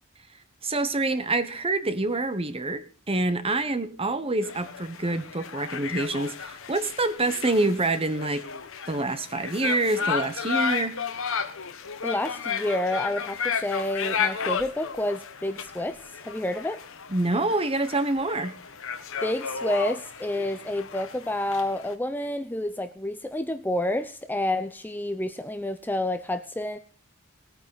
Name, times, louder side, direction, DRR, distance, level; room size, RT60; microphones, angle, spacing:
voice 1, 0.6-8.4 8.9-11.0 17.1-18.5, right 2 dB, 25° right, 11 dB, 1.2 m, -26 dB
sound 1, 4.4-21.9, left 6 dB, 65° left, 1.4 m, -33 dB
voice 2, 12.0-16.8 19.2-26.8, left 1 dB, 10° left, 9 dB, 0.6 m, -29 dB
19.5 x 9.3 x 4.0 m, 0.40 s
head